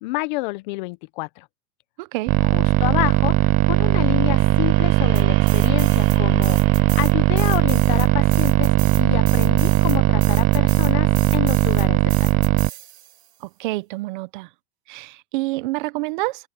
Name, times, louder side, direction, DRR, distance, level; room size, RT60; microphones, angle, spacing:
voice 1, 0.0-1.5 2.5-8.7 9.0-12.4, left 24 dB, 45° left, 1.1 m, -29 dB
voice 2, 2.0-2.4 13.4-14.5 14.9-16.5, right 21 dB, 50° right, 1.0 m, -28 dB
sound 1, 2.3-12.7, right 20 dB, 25° right, 0.5 m, -18 dB
sound 2, 3.3-11.7, right 16 dB, 65° right, 3.2 m, -43 dB
sound 3, 5.2-6.2 6.4-13.3, right 12 dB, 80° right, 3.1 m, -36 dB
hypercardioid pair, 140°, 32 cm